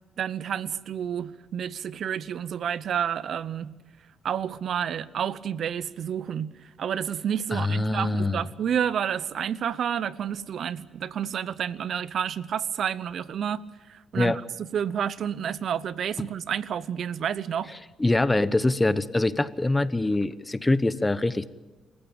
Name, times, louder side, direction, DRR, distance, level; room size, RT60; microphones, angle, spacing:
voice 1, 0.2-3.7 4.2-6.5 6.8-13.6 13.9-14.3 14.7-17.7, right 8 dB, 60° right, 18 dB, 0.8 m, -30 dB
voice 2, 7.5-8.4 14.1-14.4 16.2-16.3 18.0-21.5, left 2 dB, 15° left, 15 dB, 0.9 m, -24 dB
27.0 x 15.5 x 8.8 m, 1.2 s
cardioid pair, 90°, 0 cm